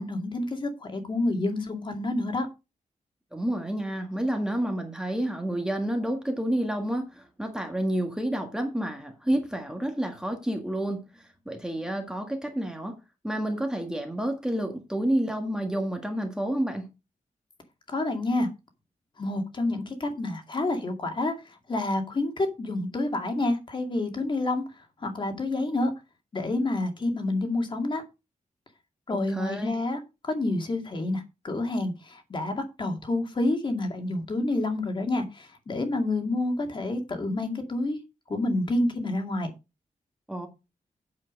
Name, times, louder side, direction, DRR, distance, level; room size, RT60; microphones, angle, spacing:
voice 1, 0.0-2.5 17.9-18.5 19.2-21.3 21.7-24.6 25.0-25.9 26.3-28.0 29.1-38.0 38.3-39.5, left 2 dB, 35° left, 2.3 m, -28 dB
voice 2, 3.3-13.0 13.2-16.9 29.3-29.7 40.3-40.5, right 1 dB, 5° right, 1.6 m, -29 dB
8.6 x 7.4 x 5.2 m
wide cardioid pair, 155°, 14 cm